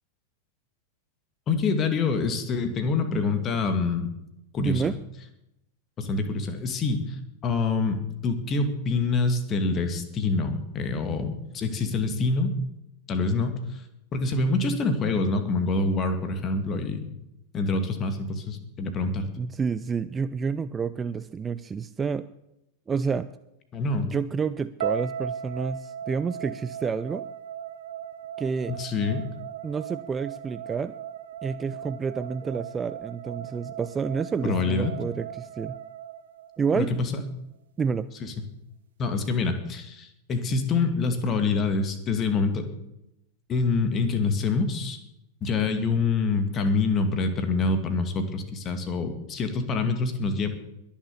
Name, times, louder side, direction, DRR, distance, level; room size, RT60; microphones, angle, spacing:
voice 1, 1.5-4.1 4.5-5.0 6.0-7.2 7.4-12.5 13.1-13.8 14.1-17.1 17.5-19.3 23.7-24.1 28.7-29.2 34.4-34.9 36.8-37.2 38.2-38.3 39.0-42.7 43.5-45.0 45.4-50.5, left 3 dB, 30° left, 8 dB, 2.3 m, -26 dB
voice 2, 4.6-5.0 19.4-22.3 22.9-23.3 24.0-27.3 28.4-28.8 29.6-31.0 31.4-35.8 36.6-36.9 37.8-38.1, right 5 dB, 20° right, 14 dB, 0.5 m, -29 dB
sound 1, 24.8-36.9, right 8 dB, 60° right, 1.1 m, -37 dB
22.0 x 7.3 x 7.0 m, 0.86 s
figure-of-eight pair, 90°, 0 cm